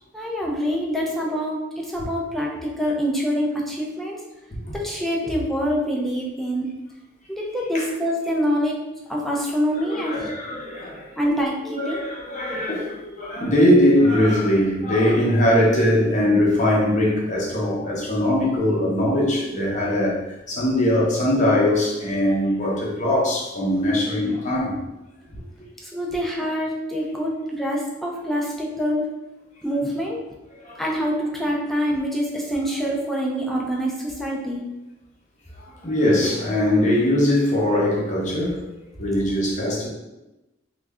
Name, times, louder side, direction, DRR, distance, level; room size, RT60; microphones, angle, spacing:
voice 1, 0.1-4.2 4.7-6.7 7.3-8.7 9.1-10.3 11.2-12.0 25.9-29.0 29.6-30.2 30.8-34.6, equal, ahead, -3 dB, 0.5 m, -25 dB
voice 2, 9.7-11.2 11.6-24.8 25.3-25.4 26.1-26.2 30.5-30.8 32.6-32.7 35.6-38.7 39.0-39.9, left 1 dB, 35° left, -3 dB, 0.8 m, -21 dB
3.2 x 2.4 x 3.5 m, 1.0 s
head